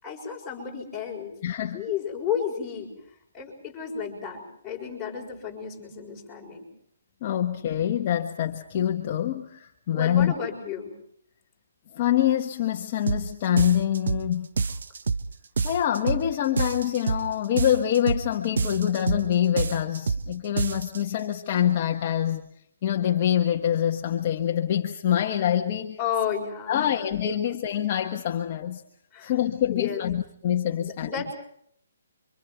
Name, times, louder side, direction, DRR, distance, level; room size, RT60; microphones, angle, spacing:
voice 1, 0.0-1.4 1.7-2.9 3.3-6.7 9.9-10.9 26.0-27.0 27.4-27.6 29.1-29.3 29.7-30.1 30.7-31.3, left 7 dB, 10° left, -3 dB, 6.2 m, -32 dB
voice 2, 1.4-1.8 7.2-10.3 11.9-14.5 15.6-22.5 22.8-26.0 26.7-28.8 29.2-31.2, left 10 dB, 30° left, 2 dB, 1.5 m, -25 dB
sound 1, 13.1-13.3 13.6-14.3 14.6-15.3 15.6-16.3 16.6-17.3 17.6-18.3 18.6-19.3 19.6-20.3 20.6-21.0, right 4 dB, 65° right, 1.1 m, -27 dB
30.0 x 25.5 x 4.6 m, 0.67 s
hypercardioid pair, 170°, 0 cm